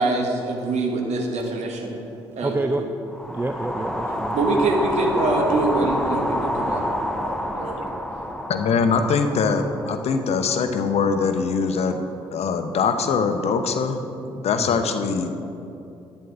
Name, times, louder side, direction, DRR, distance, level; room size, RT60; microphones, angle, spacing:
voice 1, 0.0-1.9 2.4-2.6 4.3-6.8 7.2-7.9, right 2 dB, 55° right, 2 dB, 1.5 m, -24 dB
voice 2, 2.4-2.9 3.3-4.4 8.9-9.1 14.6-14.8, right 2 dB, 15° right, 6 dB, 0.5 m, -28 dB
sound 1, 3.1-11.3, left 1 dB, 5° left, 0.9 m, -28 dB
voice 3, 8.5-14.0 14.3-15.4, left 5 dB, 50° left, 7 dB, 0.8 m, -22 dB
11.0 x 9.0 x 3.5 m, 2.7 s
figure-of-eight pair, 45°, 14 cm